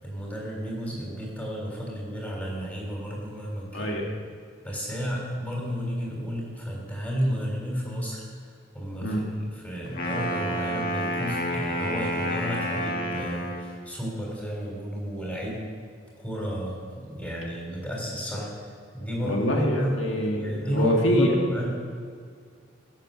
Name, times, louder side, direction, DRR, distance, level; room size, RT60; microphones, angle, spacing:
voice 1, 0.0-3.9 4.6-8.2 8.7-9.2 9.5-15.6 16.2-16.8 17.0-18.5 18.9-19.4 19.8-19.9 20.4-21.7, equal, 10° left, -2 dB, 3.4 m, -32 dB
voice 2, 3.7-4.1 9.0-9.2 19.2-21.4, equal, 75° left, 0 dB, 1.9 m, -25 dB
Wind instrument woodwind instrument, 9.9-13.8, equal, 45° left, 1.6 m, -29 dB
16.5 x 7.9 x 6.7 m, 2.1 s
head